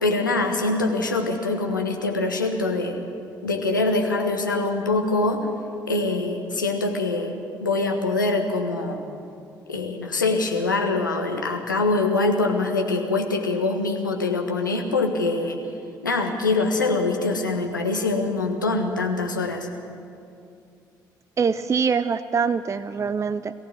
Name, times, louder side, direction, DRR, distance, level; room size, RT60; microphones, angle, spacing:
voice 1, 0.0-3.0 3.4-5.5 5.9-9.0 9.7-15.6 16.0-19.7, left 3 dB, 90° left, 3 dB, 1.3 m, -24 dB
voice 2, 21.4-23.5, right 6 dB, 30° right, 14 dB, 0.5 m, -24 dB
22.0 x 15.5 x 7.6 m, 2.5 s
figure-of-eight pair, 45°, 10 cm